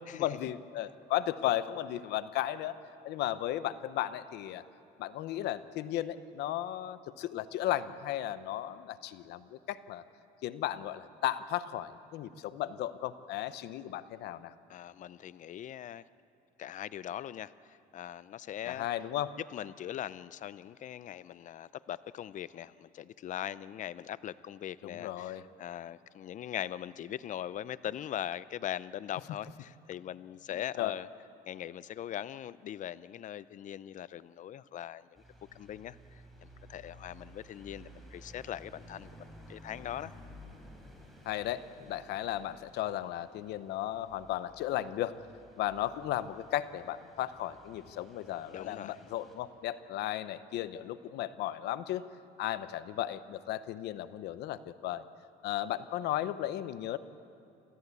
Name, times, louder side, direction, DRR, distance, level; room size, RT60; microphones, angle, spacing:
voice 1, 0.1-2.7 3.0-4.6 5.0-10.0 10.4-14.5 18.7-19.3 24.8-25.4 30.8-30.9 41.3-45.2 45.6-52.0 52.4-55.0 55.4-57.0, left 13 dB, 80° left, 14 dB, 0.8 m, -35 dB
voice 2, 14.7-16.0 16.6-18.9 19.5-31.1 31.5-35.0 35.5-36.2 36.7-40.1 48.5-49.0, left 11 dB, 50° left, 17 dB, 0.5 m, -41 dB
sound 1, 35.1-49.4, equal, ahead, 4.7 m, -55 dB
27.5 x 14.5 x 8.3 m, 2.6 s
cardioid pair, 110°, 17 cm